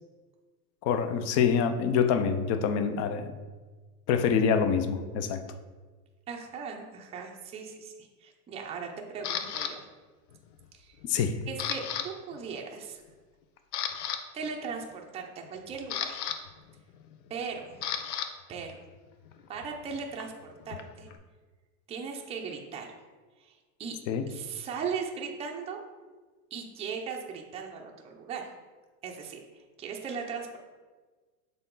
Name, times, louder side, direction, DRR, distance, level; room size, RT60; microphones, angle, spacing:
voice 1, 0.8-3.3 4.1-5.4 11.1-11.4 24.1-24.3, left 6 dB, 35° left, 9 dB, 0.5 m, -26 dB
voice 2, 6.3-9.8 10.7-11.0 11.5-13.0 14.3-16.2 17.3-17.8 18.5-18.8 19.5-21.1 21.9-22.9 23.4-24.0 24.3-25.8 26.5-28.5 29.0-30.6, right 5 dB, 15° right, 1 dB, 0.5 m, -38 dB
Camera, 9.2-9.7 10.3-10.7 11.0-12.1 12.3-12.5 13.1-13.2 13.6-14.2 15.4-18.3 18.6-21.2, left 8 dB, 70° left, 0.8 m, -35 dB
6.9 x 4.0 x 3.8 m, 1.4 s
supercardioid pair, 130°, 47 cm